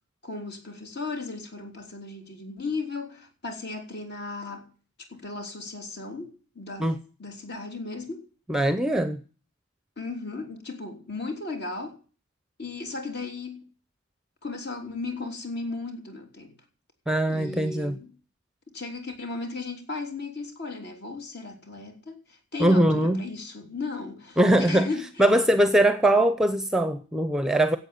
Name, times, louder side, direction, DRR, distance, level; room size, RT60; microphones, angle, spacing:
voice 1, 0.2-4.7 5.1-8.2 10.0-12.0 12.6-13.7 14.4-16.5 17.3-18.2 18.7-25.2, left 3 dB, 55° left, 3.4 m, -36 dB
voice 2, 8.5-9.2 17.1-18.0 22.6-23.2 24.4-24.9 25.2-27.8, right 1 dB, 5° right, 0.8 m, -21 dB
12.0 x 8.3 x 9.5 m
head